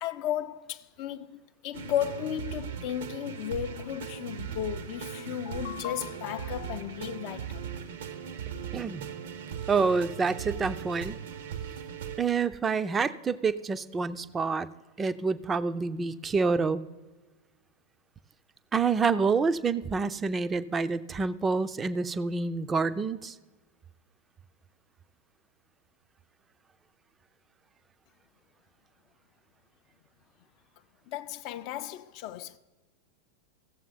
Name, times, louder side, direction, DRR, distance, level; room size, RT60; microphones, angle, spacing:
voice 1, 0.0-7.6 31.1-32.6, left 11 dB, 45° left, 0.4 m, -34 dB
sound 1, 1.7-12.2, right 7 dB, 60° right, 0.7 m, -39 dB
voice 2, 8.7-9.0 9.7-11.2 12.2-14.7 15.0-16.8 18.7-23.3, right 4 dB, 20° right, 0.4 m, -27 dB
16.0 x 7.2 x 4.0 m
figure-of-eight pair, 90°, 0 cm